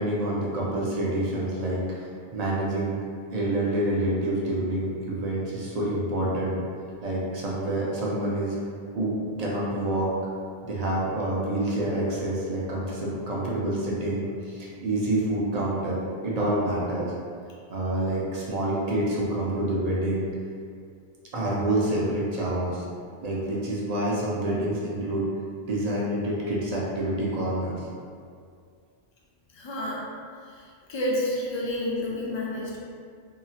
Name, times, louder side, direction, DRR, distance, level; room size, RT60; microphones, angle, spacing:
voice 1, 0.0-3.0 3.3-6.6 7.0-8.6 8.9-10.1 10.6-16.0 16.2-17.1 17.7-20.3 21.3-22.8 23.2-25.3 25.6-27.8, right 1 dB, 45° right, -5 dB, 0.6 m, -27 dB
voice 2, 29.5-30.0 30.9-32.8, left 1 dB, 40° left, -5 dB, 0.4 m, -29 dB
2.8 x 2.4 x 2.7 m, 2.2 s
omnidirectional pair, 1.1 m